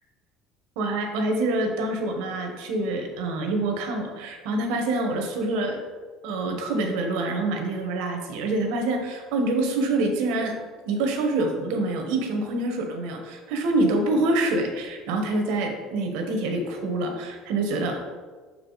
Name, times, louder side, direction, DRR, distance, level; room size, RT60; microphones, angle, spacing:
voice 1, 0.8-5.8 6.2-10.6 10.9-18.0, right 2 dB, 80° right, 4 dB, 1.1 m, -26 dB
5.8 x 4.9 x 4.0 m, 1.5 s
supercardioid pair, 100°, 0 cm